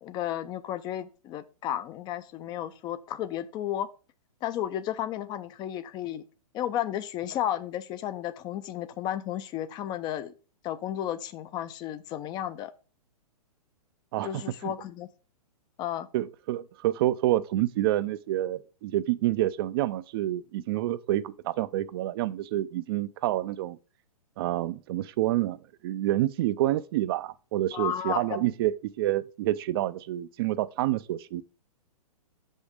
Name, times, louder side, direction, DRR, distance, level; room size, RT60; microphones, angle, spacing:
voice 1, 0.0-3.9 4.4-6.2 6.5-10.3 10.6-12.7 14.2-15.1 15.8-16.1 27.7-28.5, left 11 dB, 20° left, 0.4 m, -33 dB
voice 2, 14.1-14.7 16.1-23.8 24.4-25.6 25.8-31.4, right 14 dB, 40° right, 0.4 m, -28 dB
6.1 x 5.3 x 4.8 m
hypercardioid pair, 120°, 19 cm